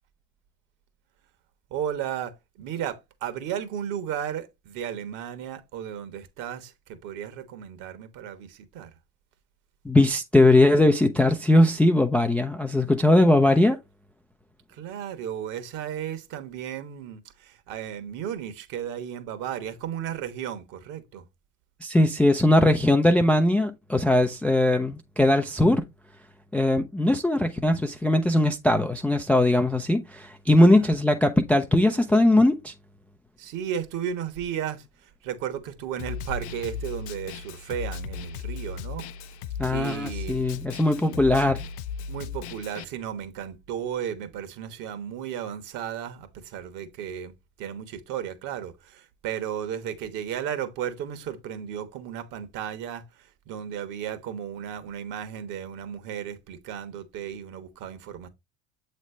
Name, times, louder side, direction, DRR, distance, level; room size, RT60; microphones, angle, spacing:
voice 1, 1.7-8.9 14.7-21.3 30.6-30.9 33.4-39.1 39.7-40.4 41.0-41.2 42.1-47.3 47.6-58.3, right 9 dB, 45° right, 1.3 m, -34 dB
voice 2, 9.8-13.8 21.8-25.8 26.5-32.7 39.6-41.6, left 1 dB, 5° left, 0.4 m, -20 dB
Snare drum, 36.0-42.8, left 5 dB, 50° left, 0.6 m, -36 dB
8.0 x 3.3 x 4.3 m
figure-of-eight pair, 70°, 43 cm